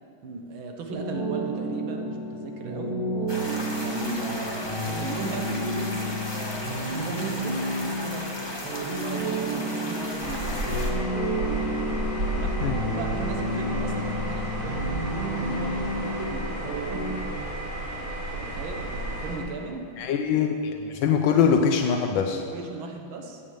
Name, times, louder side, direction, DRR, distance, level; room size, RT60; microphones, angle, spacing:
voice 1, 0.2-3.0 3.8-10.6 12.3-15.0 15.3-17.1 18.3-19.9 22.3-23.4, right 3 dB, 85° right, 3 dB, 2.0 m, -37 dB
sound 1, 0.9-17.2, right 1 dB, 70° right, 3.0 m, -31 dB
sound 2, 3.3-10.9, left 1 dB, 15° left, 1.2 m, -36 dB
sound 3, 10.2-19.4, right 1 dB, 45° right, 2.4 m, -32 dB
voice 2, 20.0-22.4, left 6 dB, 80° left, 5 dB, 1.4 m, -23 dB
14.5 x 8.5 x 5.0 m, 2.4 s
omnidirectional pair, 2.2 m